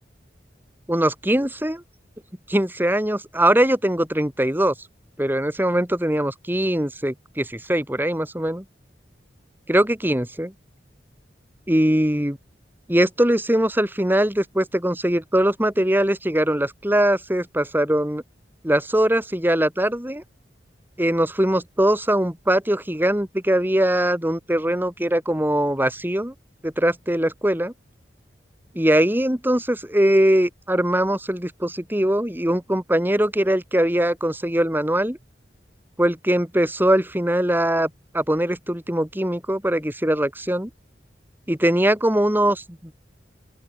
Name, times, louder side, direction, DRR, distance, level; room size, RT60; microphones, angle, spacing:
voice 1, 0.9-1.8 2.5-4.7 5.2-8.6 9.7-10.5 11.7-12.4 12.9-18.2 18.6-20.2 21.0-26.3 26.6-27.7 28.7-35.2 36.0-40.7 41.5-42.9, right 1 dB, 10° right, 2.7 m, -21 dB
open air
head